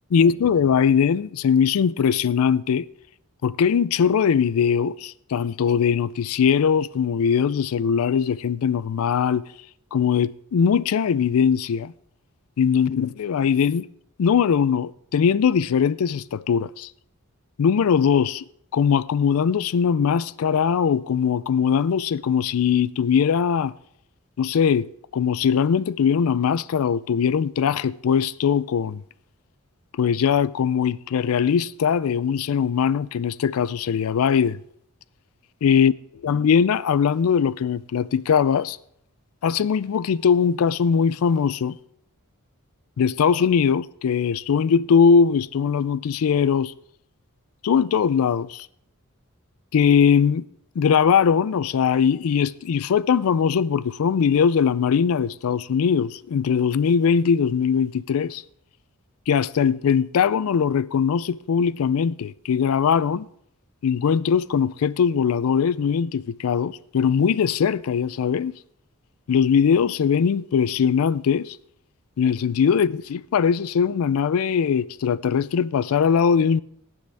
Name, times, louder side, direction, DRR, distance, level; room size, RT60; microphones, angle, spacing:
voice 1, 0.1-2.9 3.4-9.4 9.9-11.9 12.6-13.9 14.2-16.9 17.6-18.4 18.7-23.7 24.4-29.0 30.0-34.6 35.6-35.9 36.2-38.8 39.4-41.8 43.0-46.7 47.6-48.7 49.7-50.5 50.8-58.4 59.3-63.3 63.8-68.5 69.3-71.6 72.2-76.6, left 7 dB, 75° left, 0.4 m, -21 dB
18.0 x 7.8 x 3.4 m
head